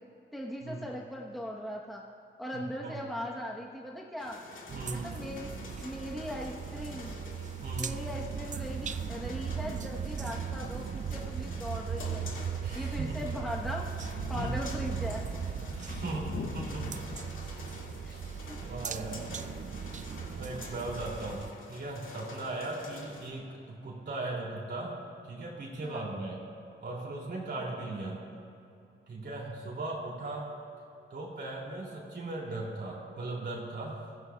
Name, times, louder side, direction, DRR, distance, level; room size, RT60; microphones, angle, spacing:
voice 1, 0.3-2.0 2.4-4.4 4.9-7.2 7.8-12.3 12.7-13.9 14.3-15.2 18.0-18.1 18.5-18.6 25.8-26.1 29.2-29.4, equal, ahead, -2 dB, 1.0 m, -39 dB
voice 2, 2.5-3.0 4.7-5.1 7.6-8.0 12.6-13.2 14.3-14.5 15.7-17.1 17.6-17.8 18.1-18.2 18.6-19.3 20.4-21.4 21.7-24.9 25.2-26.4 26.8-28.2 29.1-30.5 31.1-34.0, right 2 dB, 60° right, -4 dB, 2.7 m, -38 dB
sound 1, 4.2-23.3, left 3 dB, 75° left, 2.1 m, -48 dB
sound 2, 4.7-21.5, right 7 dB, 35° right, 0.4 m, -38 dB
Thunder, 13.5-18.6 19.0-19.1 20.5-20.6, left 5 dB, 50° left, 0.6 m, -44 dB
22.0 x 15.0 x 2.3 m, 2.6 s
wide cardioid pair, 120°, 21 cm